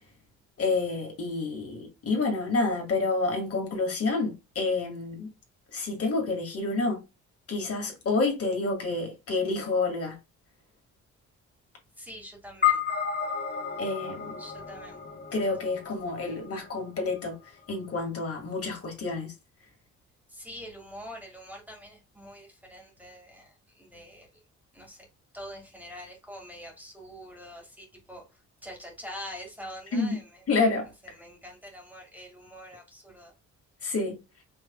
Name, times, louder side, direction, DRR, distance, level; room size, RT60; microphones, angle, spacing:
voice 1, 0.6-5.3 5.7-7.0 7.5-10.2 13.8-14.4 15.3-17.4 17.7-19.3 29.9-30.2 30.5-30.9 33.8-34.1, left 3 dB, 50° left, 1.9 m, -28 dB
voice 2, 12.0-12.8 14.4-15.0 20.3-23.5 23.8-24.3 24.7-25.0 25.3-28.2 28.6-30.2 31.2-33.3, equal, 5° right, 1.9 m, -44 dB
sound 1, 12.6-17.2, left 9 dB, 35° left, 1.2 m, -31 dB
5.3 x 3.3 x 2.2 m
cardioid pair, 90°, 30 cm